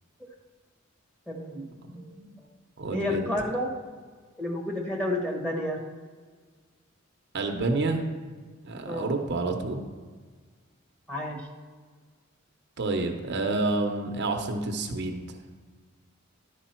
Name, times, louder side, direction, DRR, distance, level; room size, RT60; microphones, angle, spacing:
voice 1, 1.3-1.6 1.9-2.5 2.9-3.7 4.4-5.8 8.9-9.1 11.1-11.4, left 1 dB, 5° left, -1 dB, 1.3 m, -31 dB
voice 2, 1.8-2.3 2.8-3.3 7.3-8.1 8.6-9.8 12.8-15.2, right 2 dB, 55° right, 4 dB, 0.7 m, -29 dB
11.0 x 4.8 x 4.4 m, 1.5 s
head